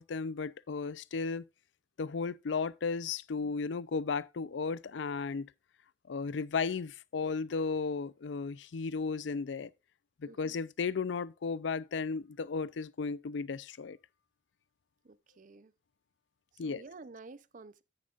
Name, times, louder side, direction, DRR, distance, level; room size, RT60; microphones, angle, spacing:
voice 1, 0.0-1.4 2.0-5.5 6.1-9.7 10.2-14.0 16.6-16.8, left 4 dB, 80° left, 0.5 m, -34 dB
voice 2, 10.3-10.6 15.0-15.7 16.5-17.8, right 3 dB, 45° right, 0.6 m, -51 dB
9.7 x 9.4 x 2.4 m
head